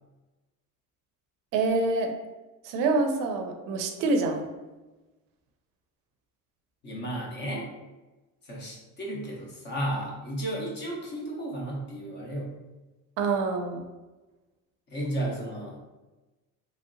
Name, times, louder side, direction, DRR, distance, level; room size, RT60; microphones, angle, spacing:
voice 1, 1.5-2.1 2.6-4.5 13.2-13.9, right 3 dB, 65° right, 5 dB, 0.5 m, -26 dB
voice 2, 6.8-7.7 8.4-12.5 14.9-15.8, right 1 dB, 30° left, -2 dB, 0.6 m, -33 dB
3.1 x 2.7 x 2.5 m, 1.1 s
cardioid pair, 175°, 36 cm